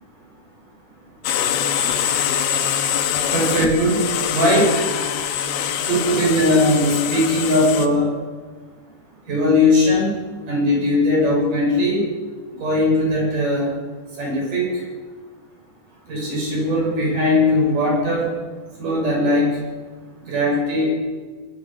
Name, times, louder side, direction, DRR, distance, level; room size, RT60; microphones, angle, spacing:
sound 1, 1.2-7.9, left 9 dB, 70° left, 2.8 m, -23 dB
voice 1, 3.3-4.0 4.3-4.7 5.9-8.1 9.3-10.1 10.5-12.0 12.6-13.7 14.2-14.8 16.1-18.3 18.8-19.6 20.2-20.9, left 1 dB, 45° right, -2 dB, 8.5 m, -19 dB
22.5 x 20.0 x 6.2 m, 1.5 s
omnidirectional pair, 5.1 m